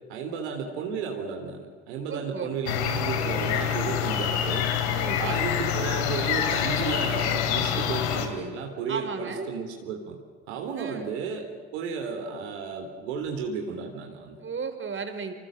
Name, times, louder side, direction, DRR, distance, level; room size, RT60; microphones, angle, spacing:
voice 1, 0.1-4.7 5.2-10.2 10.5-14.4, right 5 dB, 80° right, 3 dB, 3.6 m, -33 dB
voice 2, 2.1-2.6 4.9-5.6 8.9-9.5 10.7-11.1 14.4-15.3, right 5 dB, 35° right, 7 dB, 4.7 m, -34 dB
sound 1, 2.7-8.3, left 9 dB, 80° left, 3.0 m, -26 dB
28.0 x 26.5 x 7.7 m, 1.4 s
hypercardioid pair, 55°, 33 cm